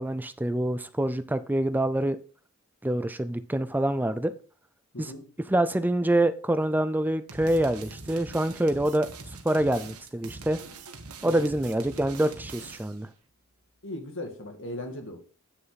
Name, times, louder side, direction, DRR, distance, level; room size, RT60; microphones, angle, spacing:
voice 1, 0.0-2.2 2.8-4.3 5.0-5.1 5.5-9.1 9.4-10.6 11.2-13.1, right 1 dB, 10° right, 12 dB, 0.4 m, -26 dB
voice 2, 4.9-5.3 11.3-11.5 13.8-15.2, left 1 dB, 60° left, 3 dB, 2.2 m, -38 dB
sound 1, 7.3-13.0, right 3 dB, 85° right, 1.3 m, -43 dB
9.5 x 6.5 x 4.1 m, 0.39 s
head